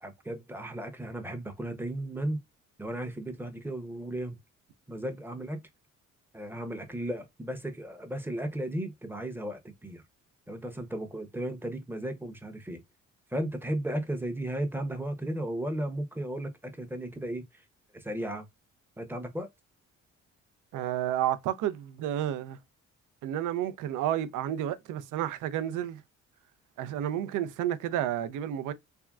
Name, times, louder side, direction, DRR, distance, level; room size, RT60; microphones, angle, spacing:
voice 1, 0.0-2.4 2.8-4.4 4.9-5.6 6.3-10.0 10.5-12.8 13.3-17.5 17.9-18.5 19.0-19.5, right 1 dB, 5° right, 0.6 m, -35 dB
voice 2, 20.7-22.6 23.2-26.0 26.8-28.7, right 11 dB, 85° right, 0.5 m, -31 dB
3.5 x 2.1 x 2.3 m
cardioid pair, 90°, 30 cm